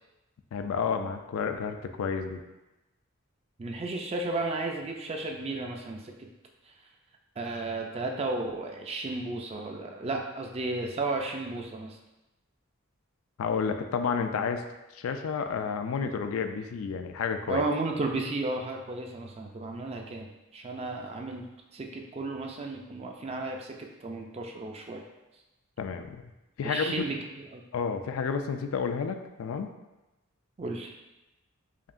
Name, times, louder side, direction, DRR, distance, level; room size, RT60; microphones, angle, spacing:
voice 1, 0.5-2.4 13.4-14.6 14.9-17.6 25.8-26.2 26.6-26.9 27.7-29.7, left 6 dB, 80° left, 7 dB, 0.3 m, -30 dB
voice 2, 3.6-6.3 7.4-12.0 17.5-23.7 24.0-25.0 26.6-27.2 27.5-27.6 30.6-30.9, right 2 dB, 30° right, 2 dB, 0.4 m, -33 dB
5.0 x 2.7 x 2.5 m, 1.0 s
head